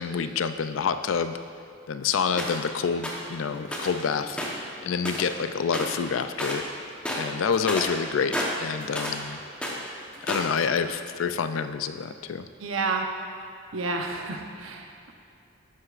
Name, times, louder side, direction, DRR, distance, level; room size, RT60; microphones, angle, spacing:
voice 1, 0.0-1.4 1.9-6.6 7.2-8.3 8.6-9.4 10.3-12.5, left 6 dB, 70° left, 10 dB, 0.4 m, -27 dB
sound 1, 2.4-2.7 3.0-3.3 3.7-4.0 4.3-5.4 5.7-6.0 6.3-6.7 7.0-9.2 9.5-10.6, equal, 5° left, 1.0 m, -31 dB
voice 2, 12.6-13.1 13.7-15.1, right 3 dB, 85° right, 3 dB, 0.8 m, -30 dB
11.5 x 7.9 x 2.5 m, 2.7 s
head